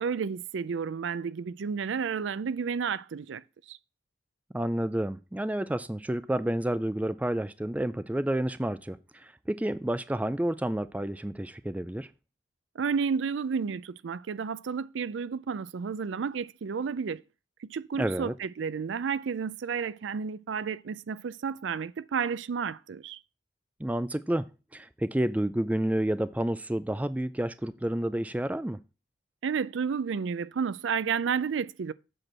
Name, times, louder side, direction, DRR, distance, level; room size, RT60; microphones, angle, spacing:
voice 1, 0.0-3.4 3.7-3.8 12.8-17.2 17.6-23.2 29.4-31.9, right 6 dB, 75° right, 0.4 m, -31 dB
voice 2, 4.5-12.1 18.0-18.3 23.8-24.5 24.7-28.8, right 1 dB, 10° right, 0.3 m, -30 dB
7.9 x 4.4 x 6.1 m
head